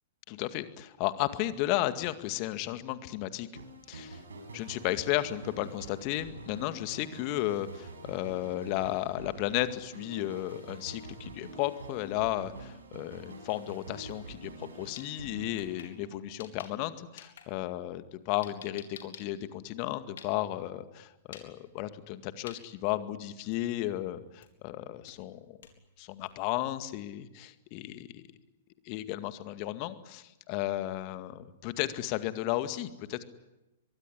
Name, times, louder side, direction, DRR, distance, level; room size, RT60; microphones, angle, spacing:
voice 1, 0.3-3.6 3.9-4.2 4.5-25.6 26.0-28.2 28.9-33.2, left 15 dB, 40° left, 11 dB, 2.0 m, -34 dB
sound 1, 3.5-16.5, right 2 dB, 70° right, 5.9 m, -46 dB
sound 2, 14.1-14.2 14.5-16.9 17.2-20.6 21.2-21.5 21.8-22.1 22.5-22.6 23.1-23.2 23.5-23.9 24.4-24.6 25.1-26.5, left 8 dB, 60° left, 4.1 m, -50 dB
24.5 x 22.5 x 10.0 m, 1.0 s
figure-of-eight pair, 110°, 0 cm